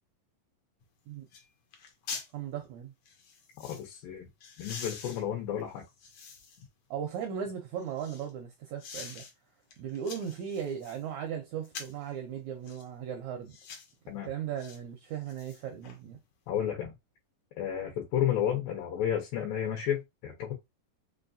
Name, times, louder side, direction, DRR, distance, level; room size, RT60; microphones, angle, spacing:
sound 1, 0.8-0.9 1.3-1.5 1.7-2.3 3.1-3.9 4.4-6.7 7.2-8.3 8.8-9.3 9.7-11.0 11.6-12.1 12.6-12.9 13.5-13.9 14.6-14.8 15.1-16.0 16.3-16.4, left 5 dB, 70° left, 1.6 m, -45 dB
voice 1, 2.1-2.9 6.9-9.2 9.8-13.6 14.3-16.2, right 8 dB, 85° right, 1.6 m, -37 dB
voice 2, 3.6-4.3 4.6-5.8 14.1-14.3 16.5-16.9 17.6-20.5, left 10 dB, 85° left, 2.6 m, -32 dB
5.5 x 2.3 x 2.6 m
omnidirectional pair, 4.0 m